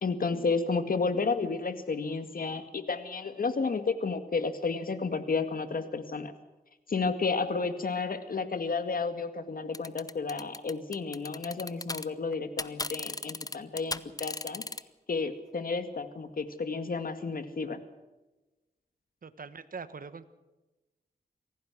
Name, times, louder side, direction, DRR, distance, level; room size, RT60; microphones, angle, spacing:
voice 1, 0.0-6.3 6.9-14.6 15.1-17.8, left 4 dB, 60° left, 9 dB, 2.1 m, -31 dB
sound 1, 9.7-12.1 12.3-14.8, left 2 dB, 20° left, 0.9 m, -36 dB
voice 2, 19.2-20.3, right 5 dB, 55° right, 13 dB, 1.4 m, -42 dB
25.5 x 17.5 x 6.3 m, 1.1 s
cardioid pair, 70°, 17 cm